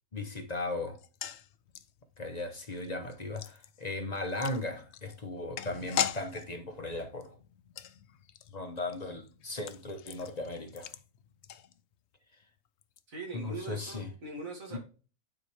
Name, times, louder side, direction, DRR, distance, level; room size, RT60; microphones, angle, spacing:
voice 1, 0.1-1.0 2.2-7.4 8.5-10.9 13.3-14.1 14.7-14.8, left 2 dB, 30° left, 0.9 m, -37 dB
sound 1, 0.9-12.2 12.4-12.5 12.8-13.0, left 10 dB, 65° left, 0.7 m, -41 dB
voice 2, 13.1-14.8, right 3 dB, 65° right, 2.4 m, -41 dB
9.7 x 4.5 x 3.2 m
omnidirectional pair, 1.6 m